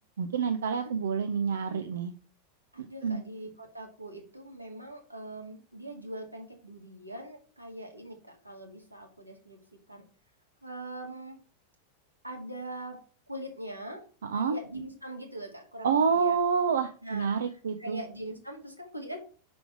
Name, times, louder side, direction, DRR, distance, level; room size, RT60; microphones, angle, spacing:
voice 1, 0.2-2.1 2.8-3.2 14.3-14.6 15.8-18.0, right 6 dB, 65° right, 9 dB, 0.6 m, -28 dB
voice 2, 2.7-9.6 9.9-10.0 10.6-11.4 12.2-13.0 13.3-14.0 14.3-16.4 17.0-19.2, right 1 dB, 85° right, 2 dB, 1.9 m, -42 dB
6.1 x 5.2 x 4.8 m, 0.39 s
figure-of-eight pair, 90°, 0 cm